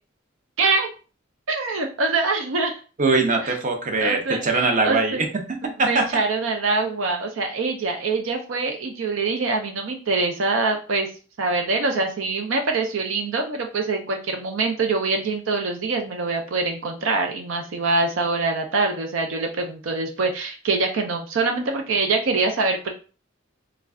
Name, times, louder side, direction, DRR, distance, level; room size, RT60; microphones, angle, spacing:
voice 1, 0.6-0.9 1.5-2.8 3.4-3.5 4.0-5.2 5.9-11.1 11.4-22.9, right 3 dB, 75° right, 4 dB, 0.5 m, -24 dB
voice 2, 3.0-6.1, right 3 dB, 40° right, 4 dB, 0.7 m, -22 dB
3.1 x 2.4 x 3.5 m, 0.36 s
head